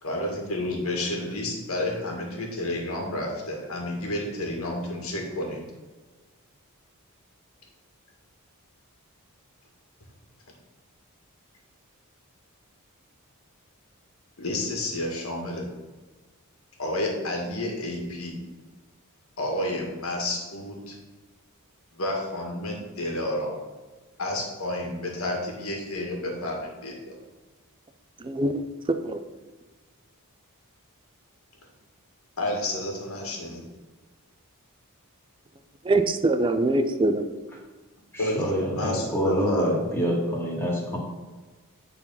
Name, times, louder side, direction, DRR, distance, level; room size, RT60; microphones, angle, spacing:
voice 1, 0.0-5.6 14.4-15.6 16.8-18.4 19.4-21.0 21.9-23.5 24.2-27.2 32.4-33.6 38.2-38.4 38.7-39.8, left 1 dB, 65° left, 0 dB, 1.9 m, -30 dB
voice 2, 28.2-28.6 28.9-29.2 35.8-37.3, right 2 dB, 20° right, 9 dB, 0.5 m, -23 dB
voice 3, 38.1-41.0, equal, 10° left, -3 dB, 2.1 m, -26 dB
9.2 x 4.1 x 5.6 m, 1.3 s
head